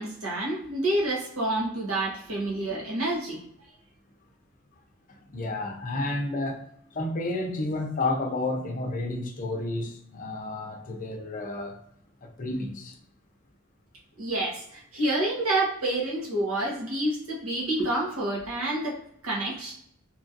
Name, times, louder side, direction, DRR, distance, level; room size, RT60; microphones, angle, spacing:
voice 1, 0.0-3.4 14.2-19.7, right 1 dB, 80° right, 1.0 m, -28 dB
voice 2, 5.1-6.7 6.9-11.8 12.2-13.0, left 2 dB, 40° left, 0.5 m, -31 dB
2.9 x 2.6 x 2.5 m
head